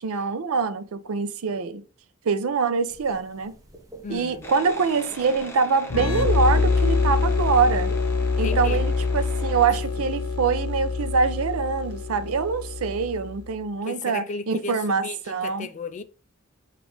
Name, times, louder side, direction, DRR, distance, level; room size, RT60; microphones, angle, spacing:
voice 1, 0.0-1.8 2.2-3.5 4.1-7.9 8.4-15.7, right 5 dB, 70° right, 0.5 m, -24 dB
sound 1, 2.9-9.1, right 2 dB, 15° right, 0.7 m, -44 dB
voice 2, 4.0-4.5 8.4-8.8 9.1-9.2 9.7-9.8 13.9-16.0, left 4 dB, 35° left, 0.4 m, -35 dB
sound 2, 4.4-9.7, left 1 dB, 10° left, 0.9 m, -41 dB
sound 3, 5.9-13.4, left 4 dB, 80° left, 0.7 m, -25 dB
7.0 x 2.5 x 3.0 m
head